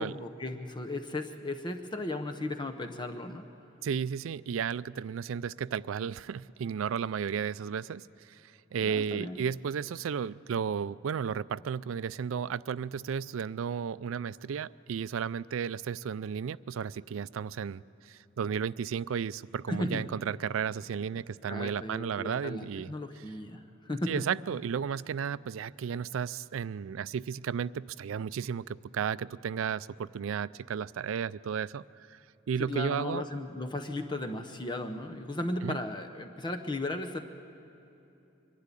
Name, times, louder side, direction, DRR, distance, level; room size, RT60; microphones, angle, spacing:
voice 1, 0.0-3.5 8.8-9.4 19.7-20.1 21.4-24.2 32.6-37.2, left 2 dB, 25° left, 5 dB, 0.8 m, -36 dB
voice 2, 3.8-8.4 8.7-22.9 24.1-32.2 32.5-33.2 35.6-35.8, right 7 dB, 75° right, 18 dB, 0.4 m, -33 dB
23.5 x 12.0 x 9.8 m, 2.9 s
head